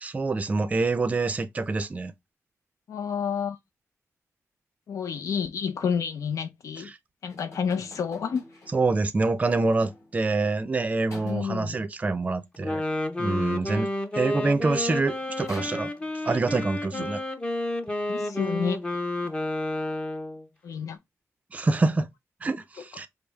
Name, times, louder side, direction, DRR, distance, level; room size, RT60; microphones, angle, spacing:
voice 1, 0.0-2.1 8.7-12.8 13.2-13.9 14.1-15.9 16.2-17.2 21.5-22.1 22.4-23.1, right 3 dB, 25° right, 0.4 m, -26 dB
voice 2, 2.9-3.6 4.9-6.9 7.2-8.4 11.2-11.8 16.9-17.0 18.1-18.8 20.6-21.0, left 7 dB, 75° left, 0.4 m, -29 dB
sound 1, 7.3-10.3 11.1-11.7 14.4-14.5 14.8-16.4, left 2 dB, 55° left, 2.6 m, -48 dB
Wind instrument woodwind instrument, 12.5-20.4, left 1 dB, 20° left, 0.6 m, -30 dB
5.2 x 2.0 x 4.4 m
wide cardioid pair, 145°, 6 cm